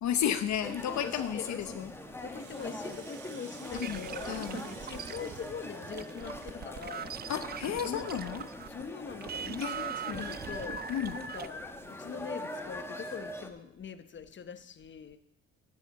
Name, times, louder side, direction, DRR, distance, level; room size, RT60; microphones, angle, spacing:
voice 1, 0.0-1.9 3.7-4.6 7.3-8.4 9.6-9.8 10.1-10.4 10.9-11.2, left 10 dB, 65° left, 10 dB, 0.8 m, -33 dB
sound 1, 0.6-13.5, left 1 dB, 10° left, 1.4 m, -42 dB
voice 2, 1.0-1.8 2.2-7.2 7.8-8.1 8.7-10.8 11.1-15.2, left 6 dB, 40° left, 11 dB, 1.0 m, -43 dB
Rattle (instrument), 2.1-6.9, right 9 dB, 80° right, 1.1 m, -54 dB
sound 2, 3.7-8.8 9.1-11.5, right 9 dB, 35° right, 0.4 m, -41 dB
11.5 x 8.2 x 6.5 m, 0.77 s
cardioid pair, 90°, 30 cm